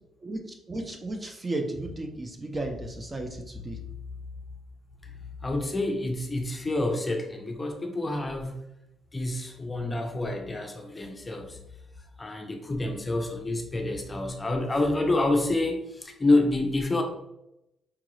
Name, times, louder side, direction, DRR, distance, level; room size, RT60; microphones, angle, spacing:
voice 1, 0.2-3.8, right 2 dB, 25° right, 4 dB, 0.6 m, -34 dB
voice 2, 5.4-8.6 9.1-11.6 12.2-17.0, left 2 dB, 20° left, 3 dB, 0.6 m, -28 dB
4.7 x 2.4 x 3.1 m, 0.85 s
cardioid pair, 90°, 0 cm